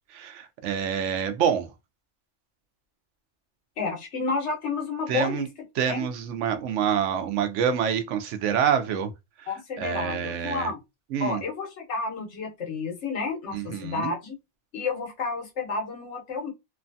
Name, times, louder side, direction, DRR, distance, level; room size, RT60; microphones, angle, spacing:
voice 1, 0.1-1.7 5.1-5.5 5.8-9.1 9.4-9.5 9.8-10.7 11.1-11.4 13.5-14.1, right 8 dB, 85° right, 0.9 m, -27 dB
voice 2, 3.8-5.5 5.9-6.1 9.5-10.8 11.2-14.3 14.7-16.5, left 4 dB, 70° left, 1.3 m, -31 dB
3.0 x 2.2 x 2.6 m
omnidirectional pair, 1.2 m